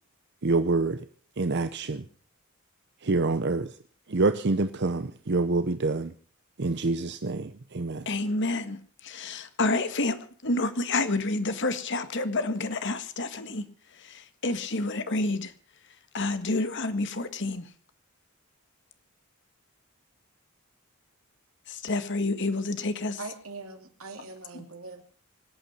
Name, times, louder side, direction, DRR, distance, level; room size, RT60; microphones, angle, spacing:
voice 1, 0.4-1.1 1.4-2.0 3.0-3.8 4.1-6.1 6.6-8.1, right 3 dB, 55° right, 0.8 m, -26 dB
voice 2, 8.1-13.7 13.9-15.5 16.1-17.7 21.7-23.2 24.5-24.7, left 2 dB, 60° left, 1.7 m, -29 dB
voice 3, 23.2-25.0, right 3 dB, 80° right, 2.9 m, -41 dB
25.0 x 9.0 x 5.7 m
head